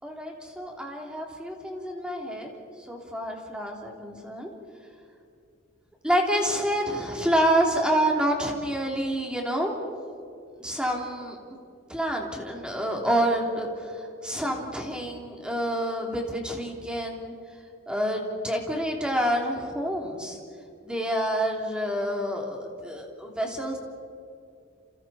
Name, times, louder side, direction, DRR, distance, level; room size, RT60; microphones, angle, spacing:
voice 1, 0.0-2.5 2.8-4.5 6.0-9.7 10.6-11.4 11.9-17.3 17.9-20.4 20.8-23.8, right 1 dB, 5° right, 0 dB, 3.1 m, -28 dB
29.0 x 29.0 x 4.3 m, 2.4 s
head